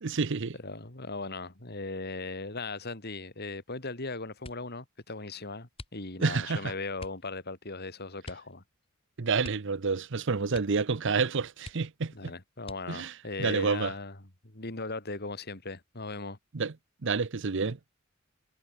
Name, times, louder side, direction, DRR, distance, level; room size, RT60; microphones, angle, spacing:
voice 1, 0.0-0.5 6.2-6.7 9.2-12.3 12.9-13.1 13.4-13.9 16.5-16.7 17.0-17.8, right 4 dB, 60° right, 0.8 m, -29 dB
voice 2, 0.6-8.6 12.1-14.2 14.4-16.4, left 3 dB, 50° left, 3.3 m, -38 dB
sound 1, 4.4-4.8 5.7-6.4 7.0-7.3 8.2-8.6 8.8-8.9 9.4-10.1 10.5-10.9 11.2-11.3 11.6-12.1 12.6-13.2 13.9-14.5 14.9-15.3, left 2 dB, 25° left, 5.8 m, -47 dB
head